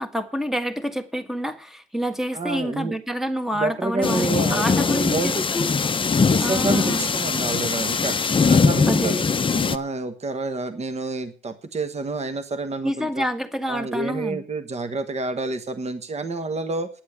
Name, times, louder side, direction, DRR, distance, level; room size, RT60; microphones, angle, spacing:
voice 1, 0.0-5.7 6.4-7.1 8.9-9.2 12.8-14.4, equal, ahead, 1.5 m, -28 dB
voice 2, 2.3-2.9 3.5-5.5 6.3-9.2 9.5-13.3 13.7-16.9, right 3 dB, 35° right, 1.2 m, -29 dB
sound 1, 4.0-9.8, left 5 dB, 25° left, 0.7 m, -21 dB
10.5 x 7.6 x 8.5 m
cardioid pair, 90°, 20 cm